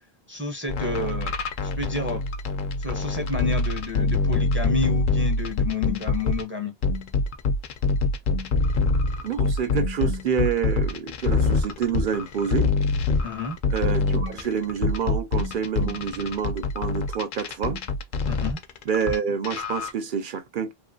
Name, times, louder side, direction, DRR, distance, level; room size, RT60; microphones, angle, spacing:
voice 1, 0.3-1.4 1.6-2.2 2.8-6.7 13.2-13.6 18.3-18.6, left 3 dB, 15° right, 0.6 m, -30 dB
sound 1, 0.7-6.4 6.8-19.2 19.4-19.9, left 3 dB, 60° left, 0.6 m, -25 dB
voice 2, 9.2-12.7 13.7-17.8 18.9-20.7, right 7 dB, 60° right, 0.7 m, -28 dB
2.9 x 2.4 x 2.6 m
omnidirectional pair, 1.1 m